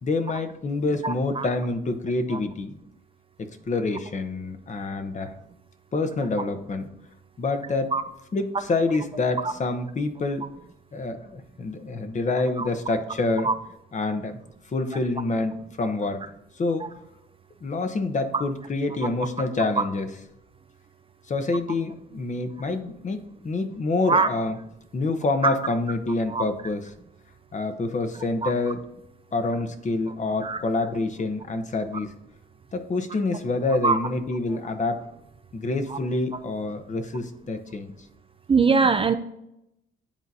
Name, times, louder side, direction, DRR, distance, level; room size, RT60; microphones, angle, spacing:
voice 1, 0.0-2.8 3.4-5.3 5.9-6.8 7.4-7.9 8.3-10.5 10.9-13.5 13.9-14.4 14.7-16.2 16.6-16.9 17.6-20.1 21.3-24.6 24.9-26.8 27.5-28.8 29.3-32.1 32.7-35.0 35.5-37.9, left 3 dB, 40° left, 8 dB, 1.0 m, -27 dB
voice 2, 1.0-1.5 2.3-2.4 7.9-8.0 9.4-9.5 12.6-12.7 13.4-13.6 18.3-18.4 24.1-24.3 26.3-26.4 28.4-28.5 30.4-30.6 33.8-34.0 35.9-36.0 38.5-39.1, right 4 dB, 25° right, 8 dB, 0.5 m, -22 dB
10.0 x 3.9 x 2.8 m, 0.81 s
cardioid pair, 90°, 20 cm